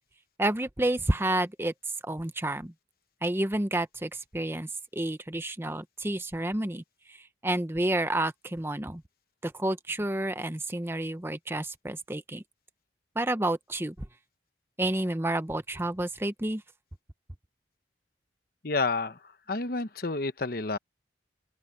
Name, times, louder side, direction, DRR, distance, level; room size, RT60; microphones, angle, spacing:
voice 1, 0.4-1.7 2.0-2.7 3.2-6.8 7.1-9.0 9.4-12.4 13.2-14.1 14.8-16.6, right 1 dB, 15° right, 0.8 m, -30 dB
voice 2, 18.6-19.2 19.5-20.8, left 3 dB, 55° left, 1.0 m, -29 dB
open air
head